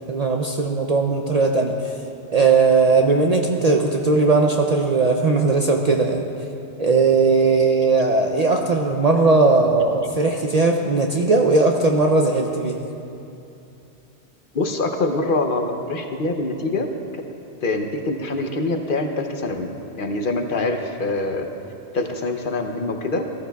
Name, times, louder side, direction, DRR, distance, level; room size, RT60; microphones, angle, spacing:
voice 1, 0.1-1.9 2.3-6.3 6.8-12.8, right 3 dB, 50° right, 2 dB, 0.5 m, -18 dB
voice 2, 14.5-16.9 17.6-21.5 21.9-23.3, left 2 dB, 55° left, 4 dB, 0.8 m, -24 dB
14.5 x 14.0 x 2.3 m, 2.7 s
omnidirectional pair, 1.1 m